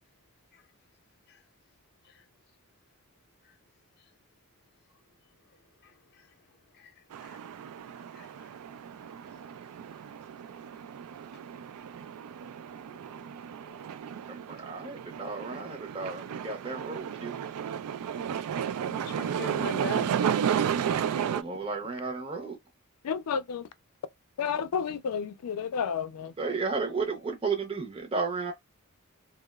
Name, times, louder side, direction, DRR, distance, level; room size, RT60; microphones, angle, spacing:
sound 1, 7.1-21.4, right 8 dB, 80° right, 0.3 m, -33 dB
voice 1, 8.1-8.5 12.9-13.3 13.7-13.9 18.9-20.3, left 2 dB, 50° left, 0.7 m, -41 dB
voice 2, 14.3-17.3 21.1-22.6 26.4-28.5, right 4 dB, 25° right, 0.6 m, -33 dB
voice 3, 23.0-23.7 24.4-26.3, left 6 dB, 85° left, 0.4 m, -31 dB
2.8 x 2.0 x 2.2 m
head